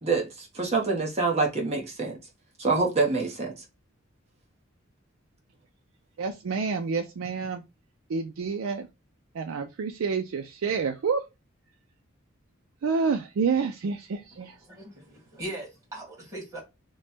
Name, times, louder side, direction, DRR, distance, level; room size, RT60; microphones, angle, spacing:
voice 1, 0.0-2.2 2.6-3.5, right 3 dB, 30° right, 0.9 m, -26 dB
voice 2, 6.2-7.6 8.1-8.9 9.3-11.2 12.8-14.6, right 5 dB, 80° right, 0.4 m, -28 dB
voice 3, 14.6-16.6, right 1 dB, 15° right, 1.5 m, -39 dB
3.1 x 2.2 x 4.1 m
head